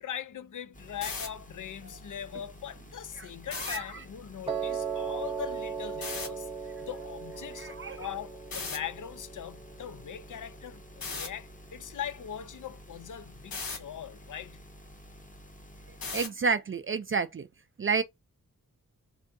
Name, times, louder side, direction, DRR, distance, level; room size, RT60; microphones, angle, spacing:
voice 1, 0.0-6.5 6.8-14.6, left 9 dB, 60° left, 0.5 m, -41 dB
sound 1, 0.7-16.2, equal, 25° left, 0.9 m, -51 dB
sound 2, 0.9-1.3 3.4-3.8 6.0-6.3 8.5-8.8 11.0-11.3 13.5-13.8 16.0-16.4, left 4 dB, 85° left, 1.3 m, -35 dB
Piano, 4.5-10.6, right 6 dB, 15° right, 0.8 m, -37 dB
voice 2, 7.6-8.0 16.1-17.5 17.8-18.0, right 5 dB, 40° right, 0.4 m, -29 dB
3.5 x 2.6 x 2.6 m
wide cardioid pair, 80°, 35 cm